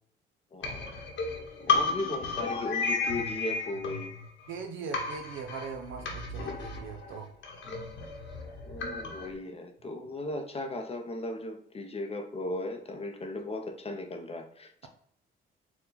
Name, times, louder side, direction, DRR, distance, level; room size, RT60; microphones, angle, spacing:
voice 1, 0.5-0.9 1.7-4.1 6.0-6.2 8.6-14.9, left 2 dB, 30° left, 0.5 m, -37 dB
sound 1, 0.6-4.6 4.9-9.3, left 4 dB, 75° left, 1.0 m, -33 dB
voice 2, 4.5-7.3, right 5 dB, 75° right, 0.5 m, -40 dB
4.5 x 2.2 x 3.9 m
cardioid pair, 90°, 20 cm